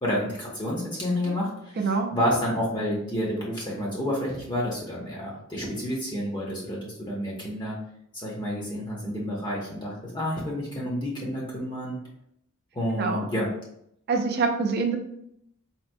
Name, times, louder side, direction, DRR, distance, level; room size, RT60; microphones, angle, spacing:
voice 1, 0.0-7.7 8.1-12.0 12.7-13.5, equal, 20° left, -4 dB, 0.6 m, -29 dB
voice 2, 1.8-2.1 12.9-13.3 14.1-15.0, right 4 dB, 50° right, 4 dB, 0.4 m, -25 dB
4.2 x 2.0 x 2.5 m, 0.74 s
head